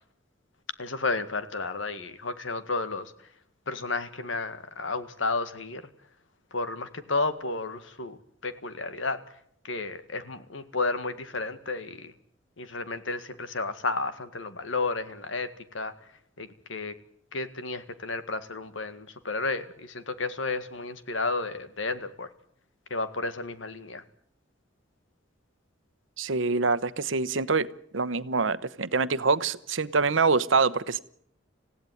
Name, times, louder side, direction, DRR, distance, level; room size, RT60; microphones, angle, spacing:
voice 1, 0.8-3.1 3.7-5.9 6.5-8.2 8.4-9.2 9.6-12.1 12.6-15.5 15.7-15.9 16.4-16.9 17.3-22.3 22.9-24.0, left 3 dB, 85° left, 11 dB, 1.9 m, -32 dB
voice 2, 26.2-27.7 27.9-31.0, right 4 dB, 80° right, 16 dB, 1.0 m, -25 dB
27.0 x 16.0 x 9.3 m, 0.70 s
head